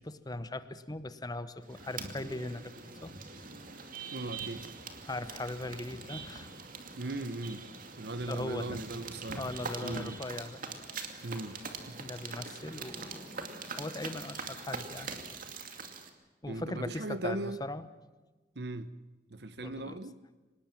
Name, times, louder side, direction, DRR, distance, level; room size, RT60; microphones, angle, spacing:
voice 1, 0.0-2.7 3.0-3.1 5.0-6.5 8.3-8.8 9.4-10.6 12.0-15.1 16.4-17.9 19.6-20.0, left 2 dB, 25° left, 1.0 m, -39 dB
sound 1, 1.6-16.1, right 4 dB, 50° right, 2.4 m, -43 dB
voice 2, 4.1-4.6 7.0-7.6 8.0-9.5 9.8-10.2 11.2-12.0 16.5-17.6 18.5-18.9 19.3-20.2, right 2 dB, 65° right, 1.1 m, -38 dB
25.0 x 20.0 x 7.5 m
head